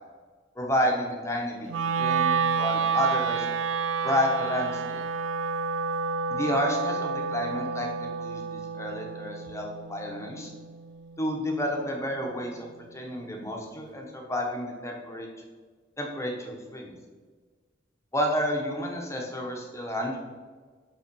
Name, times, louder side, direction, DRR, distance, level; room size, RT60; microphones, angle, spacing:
voice 1, 0.6-1.7 1.9-3.5 4.0-5.0 6.3-10.5 11.2-12.7 12.9-15.3 16.0-16.9 18.1-20.2, equal, 15° left, 1 dB, 0.9 m, -30 dB
Wind instrument woodwind instrument, 1.7-11.9, right 5 dB, 80° right, 0.4 m, -30 dB
5.3 x 3.9 x 5.3 m, 1.5 s
head